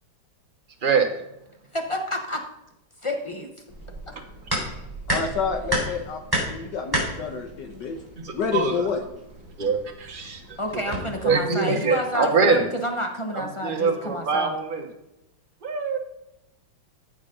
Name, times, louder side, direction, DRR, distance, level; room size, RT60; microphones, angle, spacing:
voice 1, 1.7-2.4 3.0-3.5 10.6-14.6, left 1 dB, 35° left, 3 dB, 0.4 m, -29 dB
sound 1, 3.7-11.3, right 1 dB, 10° right, 3.9 m, -32 dB
voice 2, 5.1-8.0 8.3-9.0, left 5 dB, 65° left, 5 dB, 1.5 m, -28 dB
voice 3, 8.2-8.7 9.6-10.4 11.2-12.6 13.3-14.8 15.6-16.0, right 5 dB, 30° right, 3 dB, 1.1 m, -23 dB
14.5 x 5.1 x 5.2 m, 0.87 s
omnidirectional pair, 2.2 m